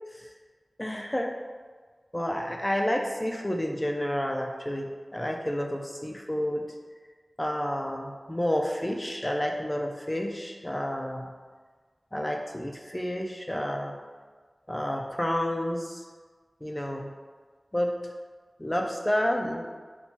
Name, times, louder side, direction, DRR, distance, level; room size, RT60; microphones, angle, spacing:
voice 1, 0.8-1.4 2.1-6.7 7.4-11.3 12.1-14.0 14.7-16.0 16.6-17.1 17.7-18.0 18.6-19.6, equal, 20° left, 2 dB, 0.3 m, -30 dB
4.3 x 2.2 x 2.8 m, 1.5 s
wide cardioid pair, 65°, 0 cm